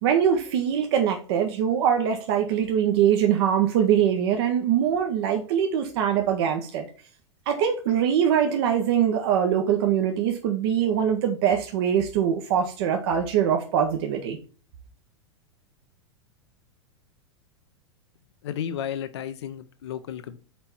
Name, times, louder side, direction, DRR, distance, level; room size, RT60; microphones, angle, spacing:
voice 1, 0.0-6.8 7.5-14.4, right 9 dB, 60° right, 4 dB, 0.9 m, -23 dB
voice 2, 18.4-20.4, left 9 dB, 65° left, 9 dB, 0.6 m, -33 dB
4.4 x 4.3 x 5.4 m, 0.39 s
hypercardioid pair, 95°, 15 cm